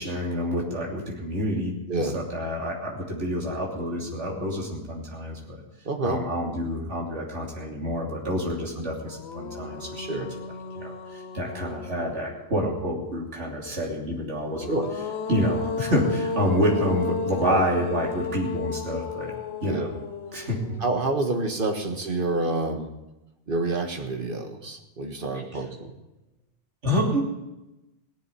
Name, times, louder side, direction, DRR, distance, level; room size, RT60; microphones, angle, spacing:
voice 1, 0.0-1.7 2.1-5.6 6.0-10.3 10.7-14.7 15.3-19.3 19.6-19.9 20.3-20.7 26.8-27.2, equal, 80° right, -1 dB, 3.4 m, -28 dB
voice 2, 5.8-6.2 8.8-8.9 10.1-10.3 14.7-14.9 17.4-17.6 19.6-19.9 20.4-20.5 20.8-22.9 23.5-25.9, right 2 dB, 50° right, 5 dB, 1.8 m, -28 dB
sound 1, 8.5-8.6 9.0-12.6 14.3-21.6, left 4 dB, 65° left, 1.2 m, -34 dB
17.5 x 7.5 x 9.9 m, 0.97 s
omnidirectional pair, 1.2 m